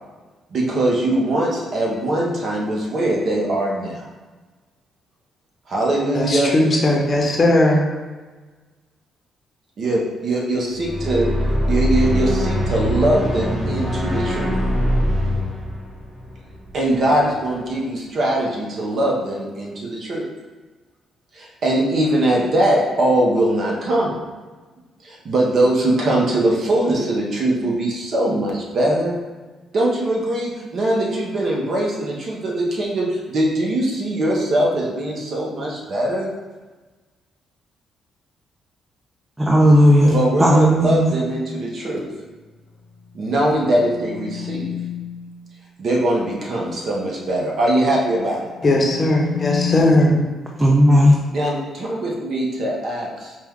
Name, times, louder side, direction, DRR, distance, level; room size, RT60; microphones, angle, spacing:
voice 1, 0.5-4.1 5.7-6.5 9.8-11.3 11.7-14.5 16.7-20.2 21.3-24.1 25.0-29.2 29.7-36.3 40.0-42.1 43.1-44.7 45.8-48.4 51.3-53.3, right 1 dB, 55° right, -2 dB, 0.9 m, -21 dB
voice 2, 6.1-7.9 48.6-50.2, left 1 dB, 40° left, -1 dB, 0.8 m, -17 dB
sound 1, 10.7-17.1, equal, 40° right, 1.4 m, -22 dB
voice 3, 39.4-41.2 50.6-51.2, equal, 15° right, -2 dB, 0.5 m, -14 dB
sound 2, 43.0-45.2 48.2-49.8, left 10 dB, 75° left, 0.6 m, -30 dB
4.7 x 2.3 x 3.6 m, 1.3 s
cardioid pair, 90°, 0 cm